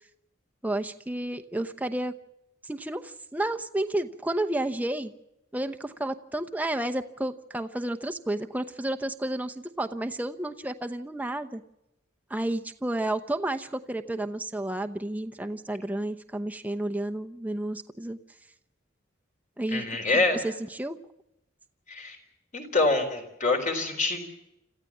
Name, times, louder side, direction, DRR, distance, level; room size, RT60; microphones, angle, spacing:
voice 1, 0.6-2.1 2.6-5.1 5.5-11.6 12.3-18.2 19.6-19.8 20.1-21.0, right 1 dB, 10° right, 7 dB, 0.9 m, -31 dB
voice 2, 19.7-20.4 21.9-22.2 22.5-24.2, left 3 dB, 40° left, 5 dB, 4.0 m, -25 dB
27.0 x 14.5 x 7.3 m, 0.87 s
head